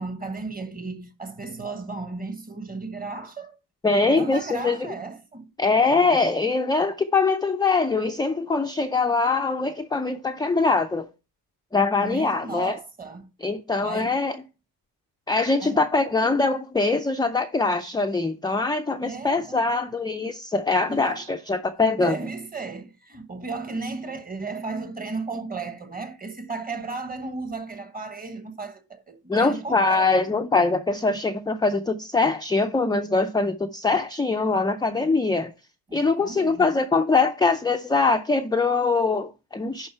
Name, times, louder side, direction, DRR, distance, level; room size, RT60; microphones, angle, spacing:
voice 1, 0.0-3.6 4.0-5.5 12.0-13.3 13.8-14.2 15.6-15.9 19.0-19.6 20.9-21.4 22.0-30.1 35.9-36.7, right 3 dB, 20° right, 1.2 m, -35 dB
voice 2, 3.8-4.9 5.6-11.1 11.7-12.8 13.4-14.4 15.3-22.2 29.3-35.5 35.9-39.9, left 3 dB, 10° left, 0.4 m, -23 dB
11.0 x 3.7 x 4.5 m
cardioid pair, 115°, 42 cm